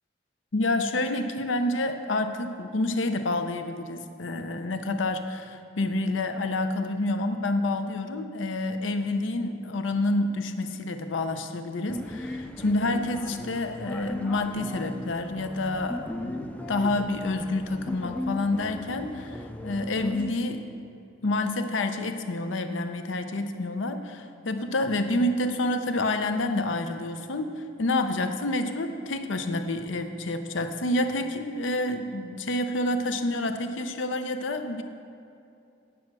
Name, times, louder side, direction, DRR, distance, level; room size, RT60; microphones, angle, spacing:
voice 1, 0.5-20.6 21.2-34.8, left 2 dB, 90° left, 7 dB, 0.7 m, -28 dB
sound 1, 11.9-20.3, left 1 dB, 5° left, 0.3 m, -37 dB
9.4 x 6.3 x 6.0 m, 2.6 s
head